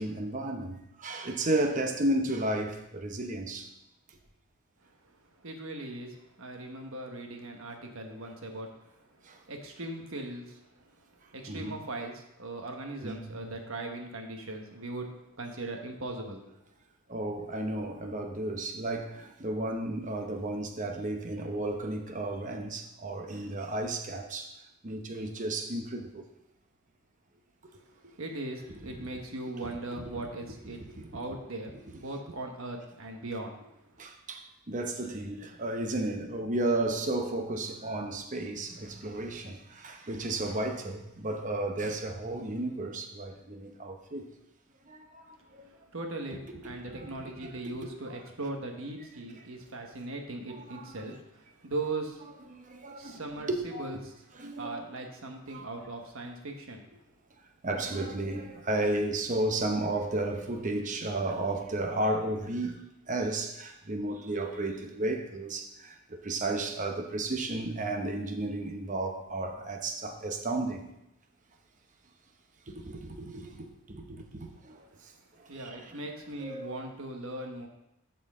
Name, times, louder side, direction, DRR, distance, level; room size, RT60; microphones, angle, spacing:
voice 1, 0.0-3.7 9.2-9.4 11.5-11.8 13.0-13.5 17.1-24.6 24.8-26.2 29.0-29.2 29.6-30.0 30.6-31.2 34.0-44.3 44.9-45.6 46.5-47.7 48.1-48.2 50.5-51.0 52.5-54.0 54.3-54.8 55.5-55.7 57.6-70.9 72.7-75.1 75.4-76.0 76.4-76.8, right 2 dB, 35° right, 4 dB, 0.9 m, -33 dB
voice 2, 5.4-9.2 9.5-10.9 11.3-16.5 27.7-30.8 31.1-33.7 45.9-52.2 53.0-53.5 53.8-54.1 54.6-56.8 75.5-77.7, right 2 dB, 65° right, 3 dB, 1.2 m, -39 dB
13.0 x 4.5 x 3.6 m, 0.85 s
head